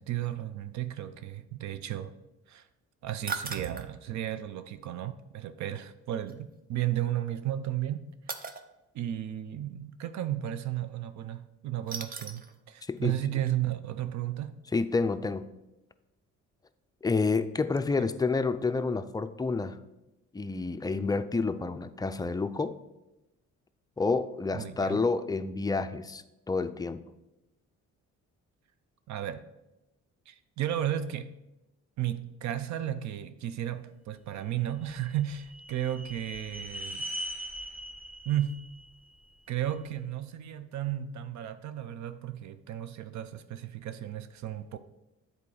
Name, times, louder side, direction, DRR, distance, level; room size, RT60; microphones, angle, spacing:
voice 1, 0.0-2.1 2.5-2.7 3.0-8.4 8.9-14.5 24.5-25.0 29.1-29.4 30.3-31.3 32.0-37.0 38.3-38.6 39.5-44.8, right 12 dB, 70° right, 11 dB, 0.5 m, -34 dB
sound 1, 3.3-3.9 6.3-6.4 8.3-8.6 11.9-12.5 13.0-13.1 13.5-13.6, right 5 dB, 30° right, 0.6 m, -37 dB
voice 2, 12.8-13.2 14.7-15.5 17.0-19.8 20.3-22.8 24.0-27.0, left 4 dB, 15° left, 10 dB, 0.4 m, -29 dB
sound 2, 34.6-39.8, right 1 dB, 5° right, 1.0 m, -41 dB
8.3 x 3.9 x 4.8 m, 0.95 s
cardioid pair, 90°, 30 cm